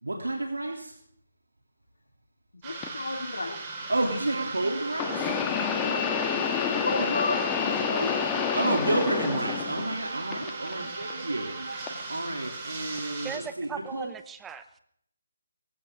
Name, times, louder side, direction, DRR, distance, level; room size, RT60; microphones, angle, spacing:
voice 1, 0.0-0.9 3.9-5.3 8.5-14.1, right 2 dB, 85° right, 1 dB, 2.9 m, -30 dB
voice 2, 2.6-3.6 6.7-8.1, left 2 dB, 75° left, 2 dB, 2.6 m, -32 dB
sound 1, 2.6-13.4, right 3 dB, 25° right, 4.8 m, -39 dB
sound 2, 2.8-2.9 4.9-10.0 10.3-11.1 11.9-12.0 13.0-13.1, left 8 dB, 15° left, 1.4 m, -29 dB
Bowed string instrument, 4.2-12.1, right 3 dB, 70° right, 1.6 m, -39 dB
voice 3, 13.2-14.8, right 7 dB, 10° right, 11 dB, 0.7 m, -39 dB
23.5 x 15.0 x 3.7 m, 0.69 s
figure-of-eight pair, 150°, 0 cm